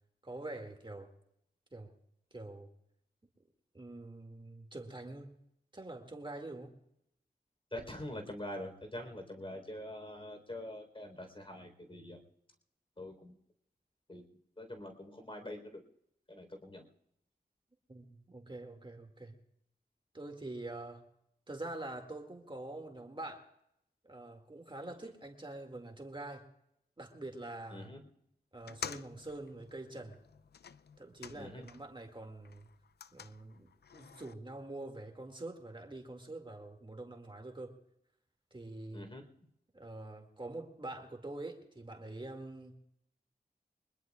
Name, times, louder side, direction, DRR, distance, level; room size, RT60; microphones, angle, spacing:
voice 1, 0.2-1.1 1.7-1.9 2.3-2.7 3.7-5.3 5.7-6.7 17.9-19.4 20.1-21.0 21.5-23.4 24.0-26.5 27.0-27.9 28.5-30.2 31.0-32.7 33.1-37.8 38.5-39.1 39.7-42.8, right 2 dB, 30° right, 3 dB, 2.2 m, -45 dB
voice 2, 7.7-12.2 13.0-13.4 14.1-14.2 14.6-15.8 16.3-16.9 24.9-25.0 27.7-28.0 31.3-31.7 38.9-39.2, left 1 dB, 35° left, 4 dB, 3.9 m, -45 dB
sound 1, 28.6-32.0 32.3-34.3, left 7 dB, 75° left, 0.4 m, -49 dB
24.0 x 20.5 x 2.4 m, 0.78 s
cardioid pair, 50°, 17 cm